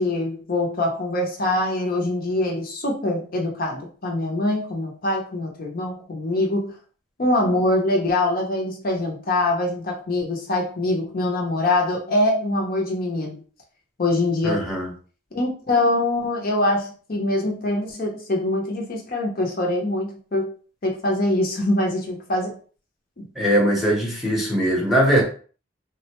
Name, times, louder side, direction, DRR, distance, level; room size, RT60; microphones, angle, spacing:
voice 1, 0.0-6.7 7.2-13.4 14.0-14.7 15.3-20.5 20.8-22.6 23.2-23.3, left 1 dB, 45° left, 0.6 m, -24 dB
voice 2, 14.4-14.9 23.4-25.2, equal, ahead, 0.8 m, -20 dB
3.6 x 2.1 x 2.9 m
head